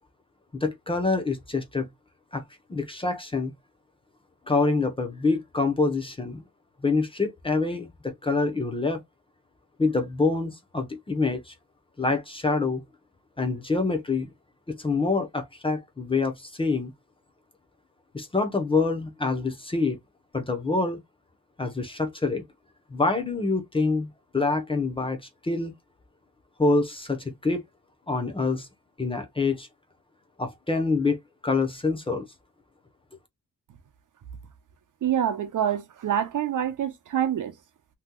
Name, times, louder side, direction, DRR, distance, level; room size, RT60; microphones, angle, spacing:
voice 1, 0.5-1.9 2.3-2.4 2.7-3.5 4.5-6.4 6.8-9.0 9.8-11.5 12.0-12.8 13.4-14.3 14.7-16.9 18.1-20.0 20.3-21.0 21.6-22.4 22.9-24.1 24.3-25.2 25.4-25.7 26.6-27.6 28.1-28.7 29.0-29.7 30.4-31.2 31.4-32.3, left 3 dB, 15° left, 0.6 m, -26 dB
voice 2, 35.0-37.5, right 9 dB, 60° right, 0.7 m, -26 dB
2.9 x 2.1 x 3.6 m
wide cardioid pair, 175°, 34 cm